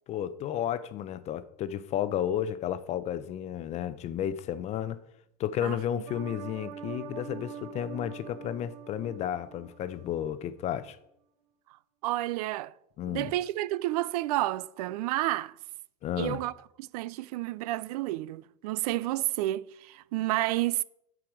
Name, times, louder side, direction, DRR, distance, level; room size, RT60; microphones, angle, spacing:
voice 1, 0.1-5.0 5.4-11.0 13.0-13.3 16.0-16.4, left 10 dB, 35° left, 0.6 m, -32 dB
sound 1, 6.1-10.3 10.6-10.7, right 7 dB, 85° right, 0.9 m, -44 dB
voice 2, 12.0-12.7 13.1-15.5 16.2-16.5 16.8-20.8, right 16 dB, 70° right, 0.4 m, -30 dB
8.6 x 4.8 x 6.1 m
supercardioid pair, 130°, 20 cm